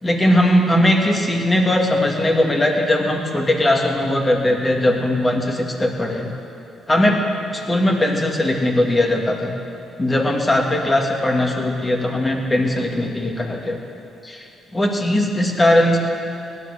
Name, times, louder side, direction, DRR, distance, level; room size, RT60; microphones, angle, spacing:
voice 1, 0.0-6.3 6.9-9.5 10.0-13.8 14.2-16.0, left 1 dB, 20° left, 1 dB, 2.3 m, -19 dB
17.0 x 11.5 x 6.6 m, 2.7 s
cardioid pair, 90°, 0 cm